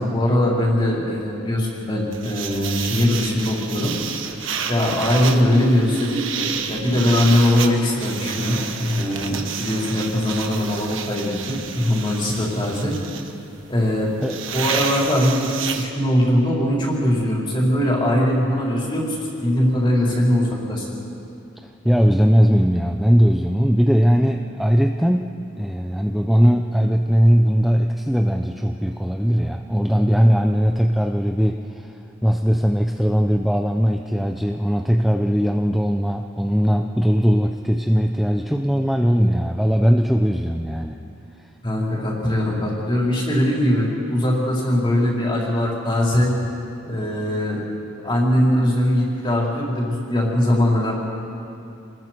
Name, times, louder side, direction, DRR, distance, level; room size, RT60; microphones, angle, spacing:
voice 1, 0.0-3.9 4.7-12.9 13.7-14.1 14.5-20.9 41.6-46.3 46.8-47.6 48.0-50.9, left 1 dB, 25° left, -4 dB, 4.6 m, -21 dB
sound 1, 2.1-15.9, right 7 dB, 85° right, 1.5 m, -30 dB
voice 2, 21.8-31.9 32.2-41.0, equal, ahead, 3 dB, 0.6 m, -19 dB
29.0 x 20.5 x 4.6 m, 2.6 s
head